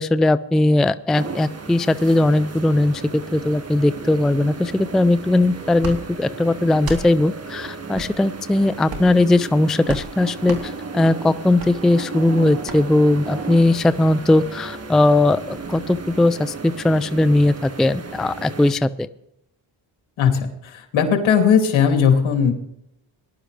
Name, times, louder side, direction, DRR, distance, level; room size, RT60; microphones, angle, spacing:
voice 1, 0.0-19.1, left 2 dB, ahead, 14 dB, 0.4 m, -19 dB
sound 1, 1.1-18.7, right 4 dB, 30° right, 1.8 m, -35 dB
sound 2, 5.8-6.0 6.8-7.0 7.9-8.1 8.8-9.2 9.9-10.1 10.4-10.6 11.6-11.7 12.6-12.8, right 2 dB, 50° right, 3.4 m, -31 dB
voice 2, 20.2-22.5, left 7 dB, 75° left, 4 dB, 2.6 m, -18 dB
19.0 x 11.5 x 3.3 m, 0.78 s
cardioid pair, 80°, 47 cm